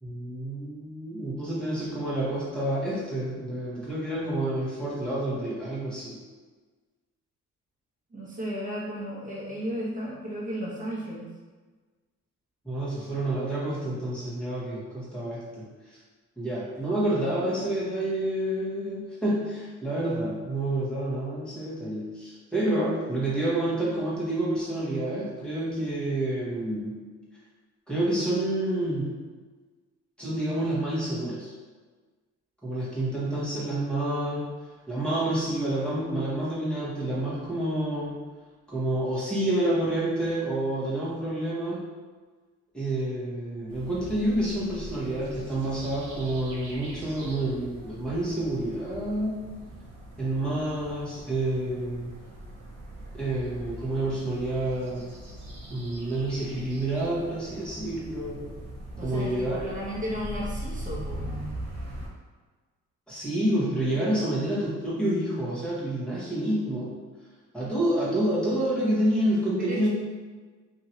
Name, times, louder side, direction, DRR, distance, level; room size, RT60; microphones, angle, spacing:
voice 1, 0.0-6.2 12.6-15.6 16.4-27.0 27.9-29.1 30.2-31.5 32.6-34.5 34.9-38.2 38.7-41.8 42.7-49.4 50.2-52.1 53.1-55.1 55.7-58.5 59.0-59.7 63.1-66.9 67.5-69.9, right 1 dB, 5° left, -8 dB, 1.3 m, -28 dB
voice 2, 8.1-11.3 59.0-61.5 69.6-69.9, equal, 25° right, -6 dB, 1.1 m, -34 dB
sound 1, 43.7-62.1, right 1 dB, 85° right, 1.0 m, -41 dB
2.9 x 2.7 x 2.8 m, 1.4 s
cardioid pair, 90°, 30 cm